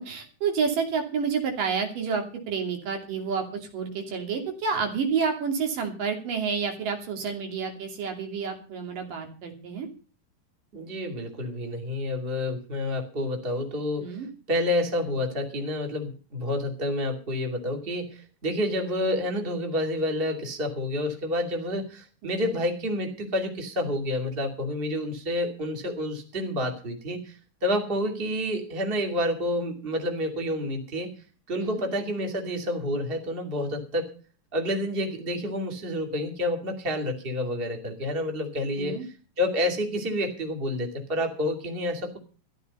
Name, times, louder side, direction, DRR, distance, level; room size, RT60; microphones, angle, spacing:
voice 1, 0.0-9.9 14.0-14.3 22.2-22.6 31.6-31.8 38.8-39.1, right 5 dB, 70° right, 3 dB, 4.3 m, -29 dB
voice 2, 10.7-14.2 14.5-31.1 31.5-34.1 34.5-42.2, left 1 dB, 20° right, 3 dB, 2.4 m, -29 dB
14.5 x 11.5 x 5.5 m, 0.38 s
omnidirectional pair, 4.0 m